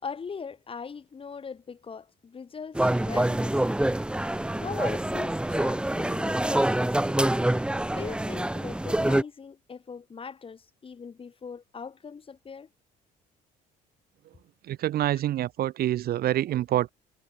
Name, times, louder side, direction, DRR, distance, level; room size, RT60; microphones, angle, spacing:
voice 1, 0.0-3.7 4.6-7.2 7.9-12.7, left 5 dB, 30° left, 7.3 m, -40 dB
sound 1, 2.7-9.2, right 1 dB, 5° right, 2.0 m, -26 dB
voice 2, 14.6-16.9, right 13 dB, 65° right, 1.9 m, -26 dB
cardioid pair, 110°, 17 cm